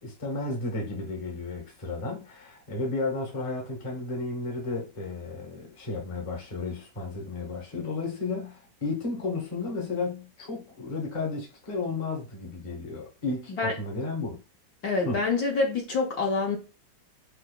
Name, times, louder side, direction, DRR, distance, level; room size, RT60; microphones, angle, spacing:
voice 1, 0.0-14.4 15.0-15.2, left 3 dB, 30° left, 0.6 m, -33 dB
voice 2, 14.8-16.6, left 3 dB, 65° left, 1.1 m, -26 dB
4.4 x 2.5 x 2.2 m
omnidirectional pair, 2.1 m